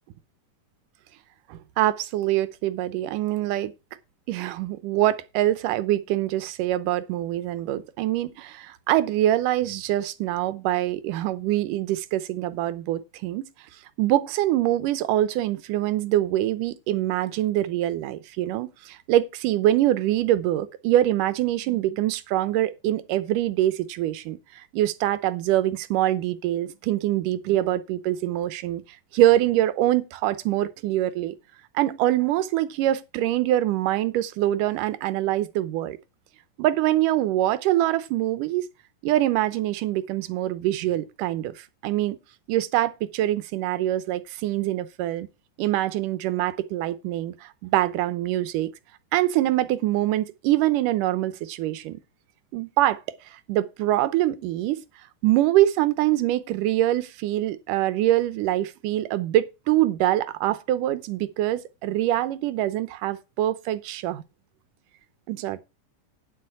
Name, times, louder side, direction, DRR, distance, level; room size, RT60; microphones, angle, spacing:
voice 1, 1.5-3.7 4.3-13.5 14.0-28.8 29.1-31.3 31.8-36.0 36.6-38.7 39.0-42.2 42.5-45.3 45.6-48.7 49.1-52.0 52.5-53.0 53.5-54.8 55.2-64.2 65.3-65.6, right 14 dB, 85° right, 2.4 m, -24 dB
9.6 x 7.8 x 4.8 m
omnidirectional pair, 3.7 m